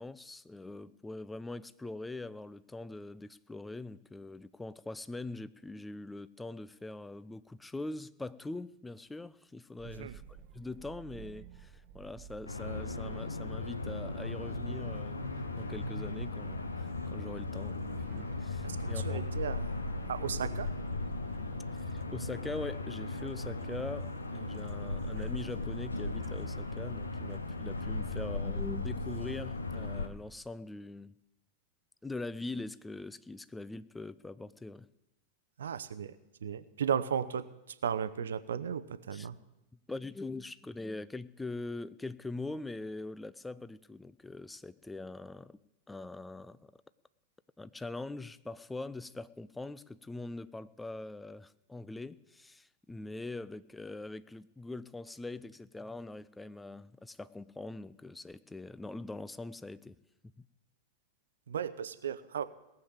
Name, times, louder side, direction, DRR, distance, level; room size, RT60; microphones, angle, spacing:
voice 1, 0.0-10.2 10.5-15.2 15.6-19.3 21.7-31.1 32.0-34.9 39.1-39.3 39.9-45.6 45.9-46.7 47.6-60.0 60.4-60.5, left 2 dB, 10° left, 16 dB, 0.5 m, -43 dB
sound 1, 9.8-28.3, right 9 dB, 40° right, 1.0 m, -54 dB
voice 2, 9.8-10.2 18.6-20.7 35.6-36.2 36.4-39.4 61.5-62.4, right 8 dB, 65° right, 14 dB, 0.7 m, -35 dB
sound 2, 12.5-30.1, left 2 dB, 80° left, 1.0 m, -37 dB
18.0 x 7.1 x 7.9 m, 0.95 s
figure-of-eight pair, 90°, 0 cm